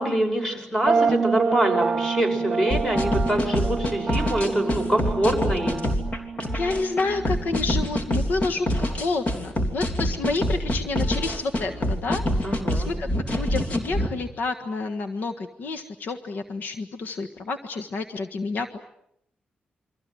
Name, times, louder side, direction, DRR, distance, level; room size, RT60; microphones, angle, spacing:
voice 1, 0.0-5.8 12.4-12.9, right 1 dB, 15° left, 5 dB, 6.0 m, -25 dB
sound 1, 0.9-8.5, right 5 dB, 30° right, 1.3 m, -28 dB
sound 2, 2.7-14.1, equal, 40° left, 3.3 m, -26 dB
voice 2, 6.5-18.8, left 3 dB, 65° left, 6 dB, 1.5 m, -29 dB
28.5 x 24.5 x 7.8 m, 0.75 s
wide cardioid pair, 155°, 3 cm